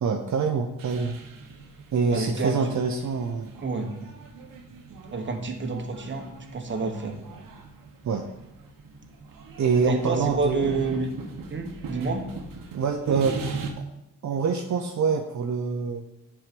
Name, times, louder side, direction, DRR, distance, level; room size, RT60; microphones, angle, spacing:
voice 1, 0.0-1.2 1.9-3.5 8.0-8.2 9.6-10.8 12.7-13.8 14.2-16.0, right 5 dB, 65° right, 3 dB, 0.7 m, -26 dB
sound 1, 0.8-13.7, right 4 dB, 90° right, 1.1 m, -40 dB
voice 2, 2.1-2.8 3.6-4.0 5.1-7.2 9.8-11.1 11.5-12.2, right 3 dB, 35° right, 4 dB, 1.2 m, -29 dB
8.8 x 4.8 x 5.2 m, 0.88 s
cardioid pair, 100°, 32 cm